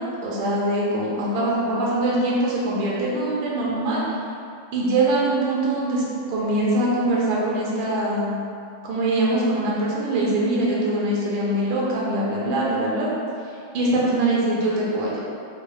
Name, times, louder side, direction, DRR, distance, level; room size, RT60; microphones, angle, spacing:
voice 1, 0.0-4.0 4.7-8.4 8.8-13.1 13.7-15.2, right 1 dB, 90° right, -5 dB, 1.5 m, -23 dB
4.1 x 2.3 x 3.0 m, 2.5 s
omnidirectional pair, 2.2 m